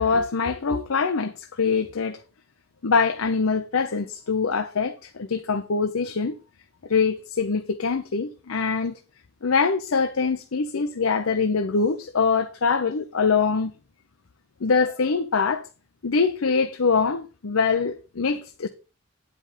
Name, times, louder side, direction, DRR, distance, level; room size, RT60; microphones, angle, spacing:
voice 1, 0.0-2.2 2.8-6.4 6.9-9.0 9.4-13.7 14.6-15.7 16.0-18.7, left 5 dB, 90° left, 0.7 m, -23 dB
9.8 x 5.2 x 5.5 m
head